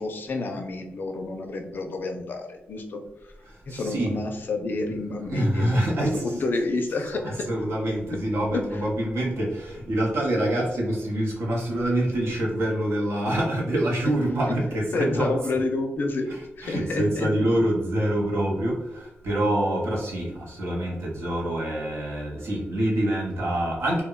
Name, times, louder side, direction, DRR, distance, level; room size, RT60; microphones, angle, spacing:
voice 1, 0.0-3.0 3.7-5.7 6.0-7.5 8.1-8.2 8.5-8.6 14.5-14.6 14.9-16.3 16.6-17.3, left 3 dB, 50° left, 4 dB, 0.4 m, -29 dB
voice 2, 3.5-4.2 5.3-6.3 7.2-15.3 16.3-24.0, right 1 dB, 80° right, -3 dB, 0.8 m, -26 dB
2.2 x 2.1 x 3.6 m, 0.93 s
wide cardioid pair, 160°, 4 cm